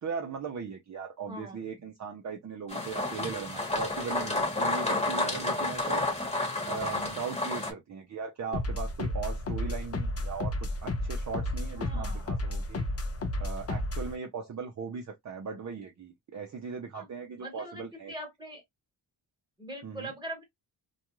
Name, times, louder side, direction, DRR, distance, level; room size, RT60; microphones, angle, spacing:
voice 1, 0.0-6.0 6.7-10.5 10.8-12.8 13.4-18.1 19.8-20.1, right 5 dB, 40° right, 0.5 m, -38 dB
voice 2, 1.3-1.6 11.7-12.3 16.9-17.1 17.4-18.6 19.6-20.4, right 1 dB, 10° right, 1.2 m, -42 dB
sound 1, 2.7-7.7, left 2 dB, 15° left, 1.1 m, -30 dB
sound 2, 8.5-14.2, left 1 dB, 35° left, 0.5 m, -32 dB
2.3 x 2.3 x 2.9 m
wide cardioid pair, 145°, 43 cm